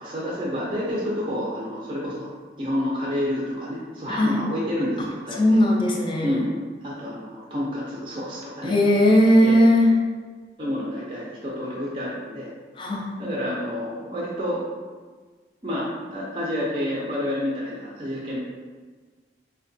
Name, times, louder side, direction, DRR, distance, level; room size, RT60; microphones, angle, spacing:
voice 1, 0.0-2.3 2.6-5.7 6.2-6.5 6.8-8.8 9.4-9.6 10.6-12.5 13.2-14.6 15.6-18.4, left 1 dB, 30° right, -5 dB, 0.5 m, -29 dB
voice 2, 5.4-6.4 8.6-9.9 12.8-13.1, equal, 25° left, -1 dB, 0.4 m, -18 dB
4.4 x 2.2 x 2.6 m, 1.4 s
head